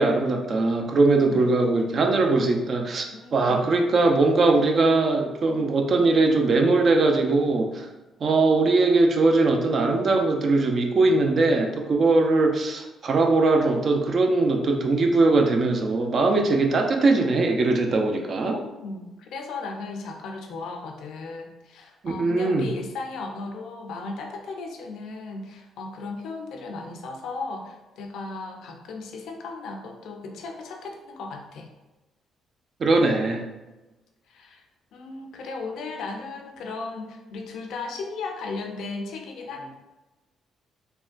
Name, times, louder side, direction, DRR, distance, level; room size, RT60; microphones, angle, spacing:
voice 1, 0.0-3.0 3.3-7.9 8.2-18.6 22.0-22.7 32.8-33.4, right 3 dB, 50° right, 3 dB, 0.5 m, -21 dB
voice 2, 3.1-3.7 18.5-31.7 34.3-34.6 34.9-39.8, left 3 dB, 75° left, 3 dB, 0.5 m, -36 dB
3.5 x 2.1 x 2.4 m, 1.1 s
supercardioid pair, 60°, 0 cm